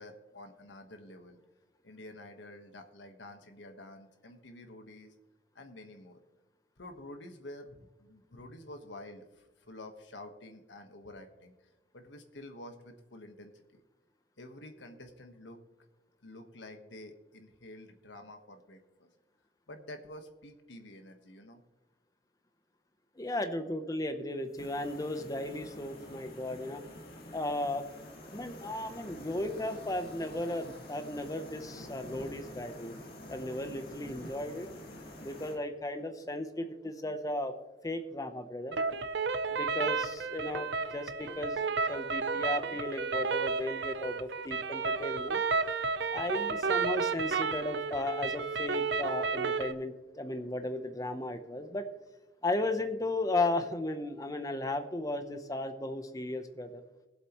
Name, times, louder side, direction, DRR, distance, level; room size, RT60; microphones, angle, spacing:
voice 1, 0.0-1.4 1.8-5.1 5.5-6.2 6.8-11.5 11.9-13.8 14.4-15.6 16.2-19.1 19.7-21.6, left 1 dB, 75° left, 6 dB, 1.3 m, -49 dB
voice 2, 23.2-26.8 27.3-27.9 28.3-33.0 33.3-34.7 35.2-37.5 37.8-38.8 39.5-41.6 41.9-45.4 46.1-51.9 52.4-56.8, left 2 dB, 20° left, 8 dB, 0.8 m, -35 dB
sound 1, 24.6-35.6, left 1 dB, 55° left, 1.9 m, -47 dB
sound 2, 38.7-49.7, right 4 dB, 65° right, 0.6 m, -32 dB
20.0 x 7.8 x 3.0 m, 1.1 s
head